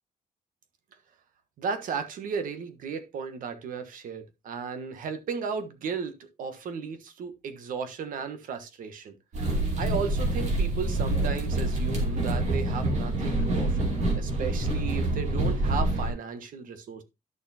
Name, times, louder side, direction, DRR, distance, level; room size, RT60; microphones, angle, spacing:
voice 1, 1.6-9.1 9.8-13.9 14.2-17.0, right 6 dB, 65° right, 1.4 m, -35 dB
sound 1, 9.3-16.1, right 2 dB, 50° right, 3.0 m, -26 dB
11.5 x 6.5 x 2.8 m
cardioid pair, 135°, 15 cm